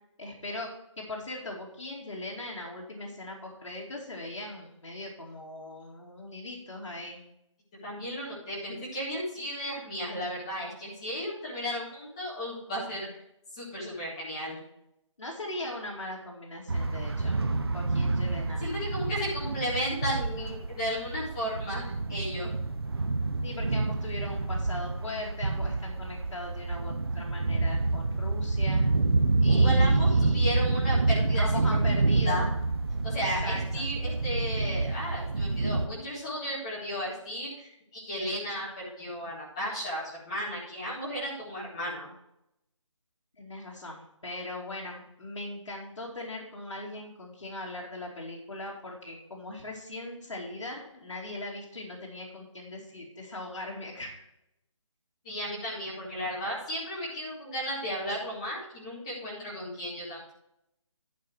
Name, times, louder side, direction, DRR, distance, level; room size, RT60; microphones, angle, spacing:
voice 1, 0.2-0.7 1.0-7.2 15.2-17.4 17.7-18.6 23.4-28.8 29.4-30.5 31.4-32.5 33.4-33.9 43.4-54.2, left 2 dB, 70° left, -3 dB, 2.4 m, -39 dB
voice 2, 7.8-13.2 13.5-14.6 18.6-22.5 29.5-31.4 32.0-32.5 33.0-42.1 55.2-60.3, equal, 10° left, -7 dB, 1.6 m, -34 dB
sound 1, 16.7-35.9, right 3 dB, 50° right, 0.8 m, -27 dB
11.0 x 4.3 x 6.2 m, 0.82 s
hypercardioid pair, 180°, 16 cm